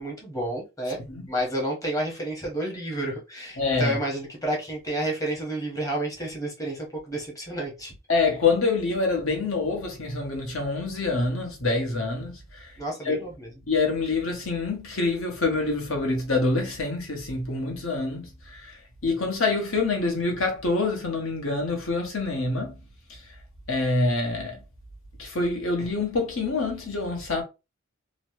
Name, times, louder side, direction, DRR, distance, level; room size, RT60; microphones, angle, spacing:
voice 1, 0.0-1.0 1.3-7.9 12.8-13.5, right 1 dB, 15° left, 1.1 m, -30 dB
voice 2, 3.6-4.0 8.1-12.7 13.0-13.2 13.7-18.7 19.0-22.7 23.7-24.6 25.2-27.4, left 3 dB, 70° left, 1.0 m, -26 dB
3.0 x 2.0 x 3.0 m
head